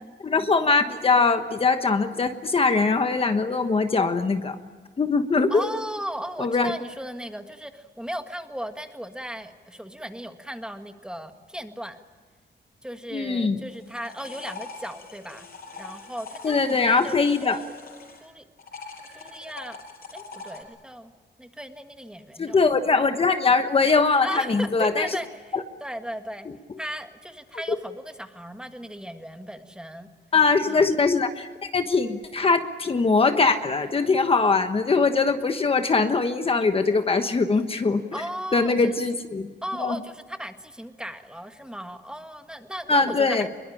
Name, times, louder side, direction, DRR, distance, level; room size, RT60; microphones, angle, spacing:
voice 1, 0.2-4.6 5.0-5.7 6.4-6.7 13.1-13.6 16.4-17.6 22.4-25.1 25.5-25.6 27.7-27.8 30.3-38.0 38.5-39.5 39.8-40.0 42.9-43.5, left 4 dB, 30° left, 7 dB, 1.2 m, -22 dB
voice 2, 5.5-12.0 12.8-15.5 15.8-17.7 18.2-18.4 19.2-19.8 20.1-21.1 21.4-22.6 24.2-25.5 25.8-26.5 26.8-30.1 30.7-30.9 38.1-39.0 39.6-43.5, equal, 5° right, 6 dB, 1.7 m, -36 dB
sound 1, 13.7-18.3 18.6-20.6, left 4 dB, 55° left, 6.4 m, -42 dB
24.5 x 22.5 x 10.0 m, 1.5 s
wide cardioid pair, 145°, 18 cm